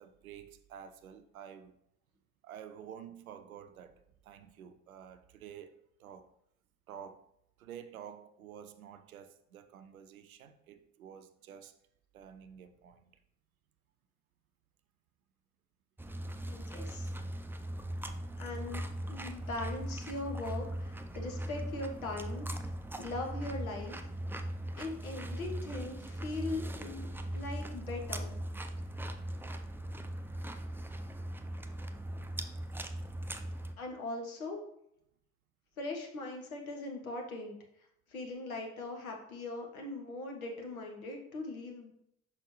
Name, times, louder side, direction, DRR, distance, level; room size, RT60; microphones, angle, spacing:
voice 1, 0.0-1.7 2.4-6.3 6.9-7.3 7.6-11.8 12.1-13.2, right 8 dB, 85° right, 10 dB, 0.5 m, -50 dB
sound 1, 16.0-33.7, right 1 dB, 5° right, 0.5 m, -39 dB
voice 2, 16.5-17.1 18.4-22.5 23.0-24.1 24.8-28.3 33.8-34.6 35.8-37.6 38.1-41.9, left 2 dB, 85° left, 2 dB, 1.0 m, -40 dB
6.0 x 5.5 x 3.1 m, 0.75 s
figure-of-eight pair, 45°, 41 cm